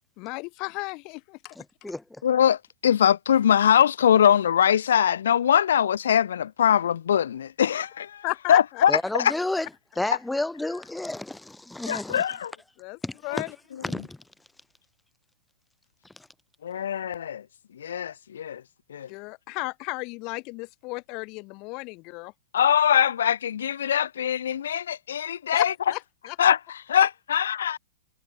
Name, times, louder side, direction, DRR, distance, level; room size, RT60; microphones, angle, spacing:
voice 1, 0.2-1.6 8.2-8.8 12.8-13.5 19.1-22.3 25.5-26.0 26.3-26.4, left 27 dB, 35° left, 1.1 m, -34 dB
voice 2, 1.5-2.2 8.9-9.7 9.9-12.2 13.0-13.5 13.8-14.2 16.2-16.3, left 2 dB, 5° left, 1.6 m, -31 dB
voice 3, 2.2-9.3 11.9-12.5 13.3-13.4 16.6-17.4 17.8-18.6 18.9-19.1 22.5-25.7 26.4-27.8, left 9 dB, 85° left, 0.3 m, -22 dB
hypercardioid pair, 155°, 0 cm